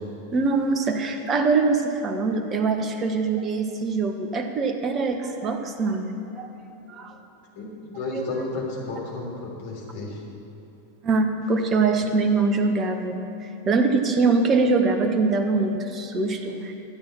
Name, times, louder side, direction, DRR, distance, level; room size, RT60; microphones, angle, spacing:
voice 1, 0.3-6.5 6.9-7.1 8.1-8.3 11.0-13.2 13.7-16.7, right 4 dB, 25° right, 6 dB, 1.2 m, -23 dB
voice 2, 7.5-10.1, left 2 dB, 50° left, -2 dB, 3.4 m, -32 dB
13.0 x 8.8 x 7.2 m, 2.9 s
figure-of-eight pair, 90°, 0 cm